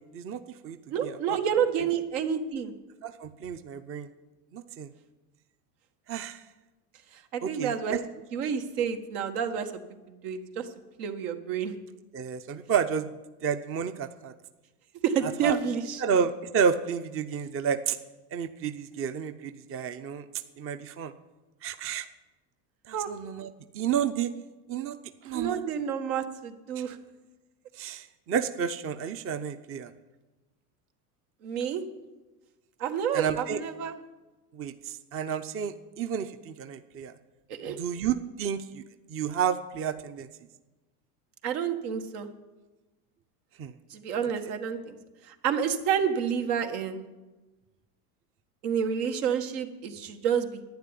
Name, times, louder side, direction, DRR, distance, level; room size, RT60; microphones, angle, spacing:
voice 1, 0.0-1.4 3.0-4.1 4.5-4.9 6.1-6.4 7.4-8.0 12.1-13.1 13.4-14.3 15.4-15.6 16.0-18.0 18.3-20.2 20.6-21.1 21.6-22.1 22.9-23.5 23.7-24.3 24.7-25.0 25.2-25.6 26.8-26.9 27.8-29.9 33.1-33.6 34.5-37.1 37.7-38.8 39.1-40.3 43.6-43.7, right 7 dB, 30° right, 10 dB, 0.7 m, -31 dB
voice 2, 0.9-2.7 7.1-8.0 8.3-9.8 10.1-10.7 11.0-11.7 15.0-16.0 22.9-23.1 25.3-27.0 31.4-31.8 32.8-33.9 37.5-37.8 41.4-42.3 43.9-45.0 45.2-47.0 48.6-50.5, right 7 dB, 75° right, 6 dB, 1.8 m, -29 dB
11.5 x 9.4 x 9.9 m, 1.1 s
supercardioid pair, 115°, 46 cm